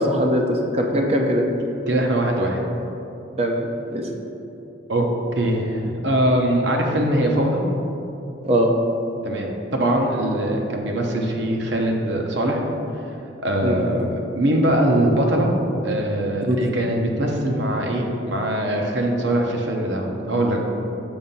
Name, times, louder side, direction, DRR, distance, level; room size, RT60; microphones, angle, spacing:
voice 1, 0.0-1.4 3.4-4.1 8.4-8.8 13.6-13.9 16.5-16.7, equal, 30° right, 2 dB, 0.5 m, -21 dB
voice 2, 1.9-2.6 4.9-5.1 5.3-7.6 9.2-12.6 13.4-14.1 14.3-15.5 15.8-20.6, right 1 dB, 70° right, 1 dB, 0.7 m, -22 dB
7.0 x 2.6 x 5.3 m, 2.8 s
head